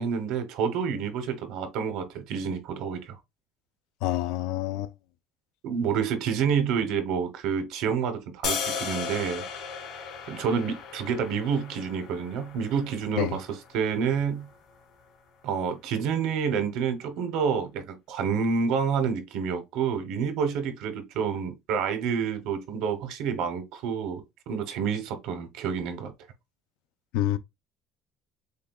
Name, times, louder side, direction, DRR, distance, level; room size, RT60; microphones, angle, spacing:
voice 1, 0.0-3.2 5.6-9.4 10.3-14.5 15.4-26.1, right 6 dB, 70° right, 0.9 m, -28 dB
voice 2, 4.0-4.9 13.2-13.4 27.1-27.4, left 13 dB, 80° left, 0.4 m, -27 dB
sound 1, 8.4-14.5, left 6 dB, 65° left, 2.1 m, -36 dB
6.7 x 2.2 x 2.3 m
cardioid pair, 150°, 0 cm